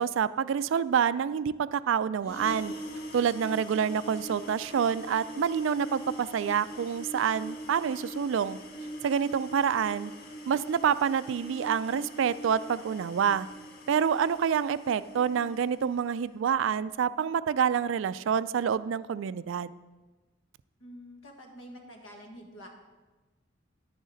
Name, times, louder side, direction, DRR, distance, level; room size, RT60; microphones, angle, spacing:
voice 1, 0.0-2.7 3.1-8.6 9.0-10.1 10.5-13.5 13.9-19.7, right 7 dB, 70° right, 16 dB, 0.3 m, -27 dB
sound 1, 2.2-16.1, right 1 dB, 50° left, 1.3 m, -42 dB
voice 2, 20.8-22.7, equal, 75° left, 2 dB, 1.7 m, -47 dB
10.5 x 10.0 x 3.9 m, 1.2 s
head